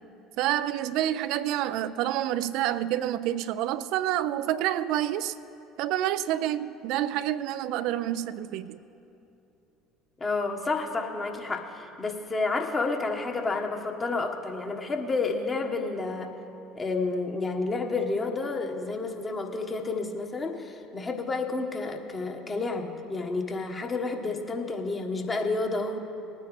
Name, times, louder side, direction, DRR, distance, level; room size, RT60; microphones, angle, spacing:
voice 1, 0.4-5.4 5.8-8.8, right 12 dB, 65° right, 0.3 m, -28 dB
voice 2, 10.2-16.3 16.7-26.0, left 3 dB, 30° left, 1.3 m, -30 dB
19.5 x 9.4 x 3.2 m
hypercardioid pair, 65°, 0 cm